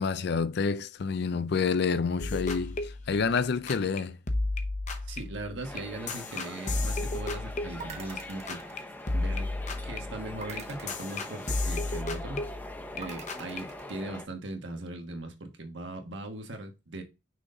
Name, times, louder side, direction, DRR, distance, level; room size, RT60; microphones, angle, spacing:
voice 1, 0.0-4.2, left 5 dB, 55° left, 0.4 m, -28 dB
sound 1, 2.2-4.0 4.3-8.8 9.1-13.0 13.3-13.6, left 2 dB, 40° left, 0.9 m, -33 dB
voice 2, 5.1-8.6 9.1-9.5 9.8-12.4 12.9-17.0, right 2 dB, 65° right, 1.4 m, -39 dB
sound 2, 5.6-14.3, left 1 dB, 10° left, 0.7 m, -43 dB
sound 3, 7.8-9.5 10.4-12.0 13.0-14.0, right 4 dB, 35° right, 1.3 m, -46 dB
6.2 x 3.9 x 3.9 m
head